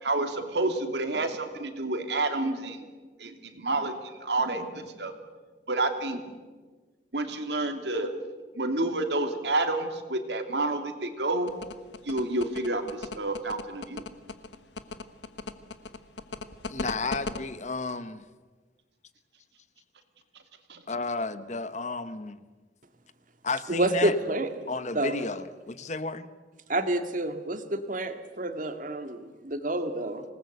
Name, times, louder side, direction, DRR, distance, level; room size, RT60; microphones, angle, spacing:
voice 1, 0.0-2.8 3.2-3.9 4.2-5.1 5.7-6.2 7.1-8.1 8.5-11.5 12.0-14.0 20.7-20.8, right 2 dB, 70° right, 6 dB, 2.7 m, -29 dB
sound 1, 11.5-17.4, left 3 dB, 75° left, 1.4 m, -36 dB
voice 2, 16.7-18.2 20.9-22.4 23.4-24.1 24.7-26.3, left 3 dB, 40° left, 13 dB, 1.0 m, -32 dB
voice 3, 23.7-24.5 24.9-25.2 26.7-30.2, right 1 dB, 45° right, 8 dB, 2.0 m, -28 dB
26.5 x 19.0 x 8.2 m, 1.3 s
head